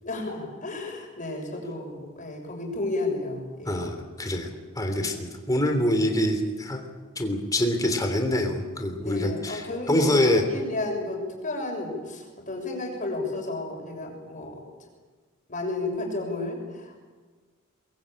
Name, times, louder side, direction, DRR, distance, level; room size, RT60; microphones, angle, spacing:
voice 1, 0.0-3.9 4.9-5.1 9.0-14.6 15.5-17.0, left 2 dB, 35° left, 1 dB, 6.6 m, -32 dB
voice 2, 3.6-4.5 4.7-6.8 7.2-10.4, left 1 dB, 15° left, 4 dB, 3.3 m, -25 dB
23.0 x 22.0 x 8.9 m, 1.5 s
head